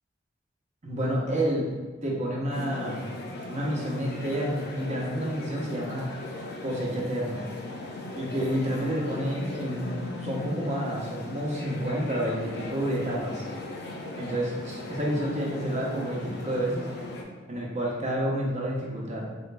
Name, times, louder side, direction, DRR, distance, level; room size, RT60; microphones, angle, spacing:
voice 1, 0.8-1.7 2.0-3.0 3.5-6.1 6.6-7.5 8.2-13.4 14.2-16.9 17.5-19.3, equal, 40° right, -3 dB, 0.9 m, -29 dB
sound 1, 2.5-17.2, left 2 dB, 60° left, 0.6 m, -38 dB
4.2 x 3.7 x 2.2 m, 1.3 s
head